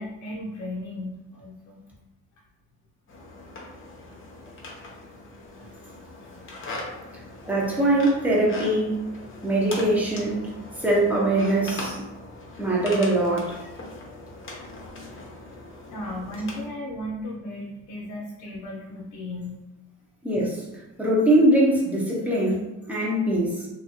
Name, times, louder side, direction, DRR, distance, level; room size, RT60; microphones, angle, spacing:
voice 1, 0.0-1.8 3.4-3.6 4.4-4.5 4.8-4.9 5.5-5.6 15.8-19.6, left 1 dB, 75° left, -3 dB, 0.7 m, -35 dB
sound 1, 3.1-16.7, left 2 dB, 40° left, 0.9 m, -40 dB
voice 2, 7.4-9.0 9.4-10.5 10.8-12.0 12.6-13.6 20.2-20.7 21.0-23.7, right 1 dB, 5° right, -5 dB, 1.0 m, -22 dB
2.9 x 2.7 x 2.9 m, 1.0 s
cardioid pair, 90°, 30 cm